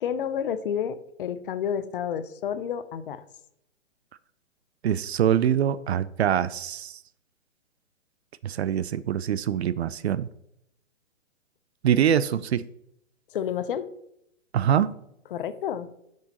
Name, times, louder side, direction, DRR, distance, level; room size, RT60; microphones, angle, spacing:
voice 1, 0.0-3.2 13.3-13.9 15.3-15.9, left 8 dB, 45° left, 12 dB, 0.6 m, -30 dB
voice 2, 4.8-6.9 8.4-10.3 11.8-12.6 14.5-14.9, right 9 dB, 60° right, 17 dB, 0.5 m, -24 dB
10.0 x 6.4 x 2.9 m, 0.77 s
hypercardioid pair, 140°, 38 cm